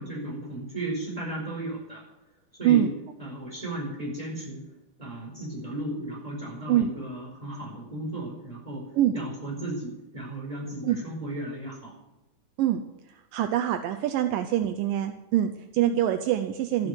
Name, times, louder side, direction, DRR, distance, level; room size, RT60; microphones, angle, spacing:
voice 1, 0.0-2.0 2.6-2.9 3.2-4.6 5.0-8.9 9.1-11.9 16.8-16.9, right 1 dB, 10° right, -2 dB, 4.7 m, -35 dB
voice 2, 13.1-16.9, right 12 dB, 80° right, 8 dB, 1.9 m, -24 dB
12.5 x 10.5 x 7.9 m, 0.98 s
omnidirectional pair, 4.7 m